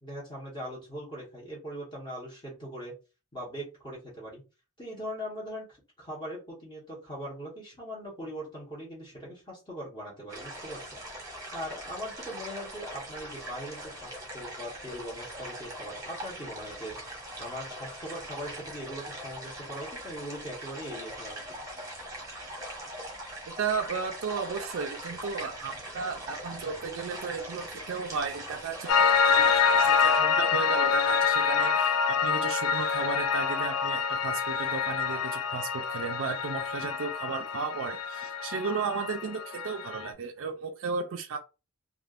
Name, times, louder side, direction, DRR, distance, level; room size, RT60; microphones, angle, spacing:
voice 1, 0.0-2.9 3.3-4.4 4.8-5.7 6.0-11.0 11.5-17.0 17.4-21.4, equal, 20° left, 1.1 m, -40 dB
sound 1, 10.3-30.2, right 1 dB, 15° right, 1.0 m, -41 dB
voice 2, 23.6-41.4, right 5 dB, 65° right, 0.4 m, -34 dB
Piano, 28.9-40.1, left 6 dB, 75° left, 0.3 m, -26 dB
3.3 x 2.4 x 2.4 m
head